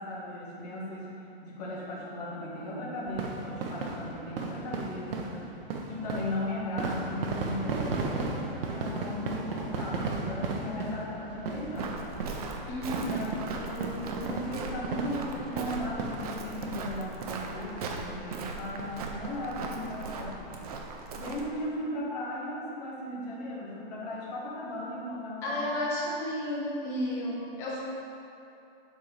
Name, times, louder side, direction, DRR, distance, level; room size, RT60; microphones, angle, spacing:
voice 1, 0.0-5.6 5.9-12.0 13.1-20.6 21.1-25.6, left 1 dB, 40° left, -5 dB, 1.7 m, -37 dB
sound 1, 3.1-17.0 17.2-17.4 17.8-17.9 18.3-18.5 18.8-19.7 20.2-20.3 20.4-20.5, right 3 dB, 65° right, 1.0 m, -35 dB
Walk footsteps, 11.7-21.5, right 4 dB, 40° right, 0.6 m, -39 dB
voice 2, 12.7-13.2 25.4-27.8, left 1 dB, 10° left, -5 dB, 0.5 m, -32 dB
7.3 x 4.5 x 5.0 m, 2.7 s
hypercardioid pair, 175°, 30 cm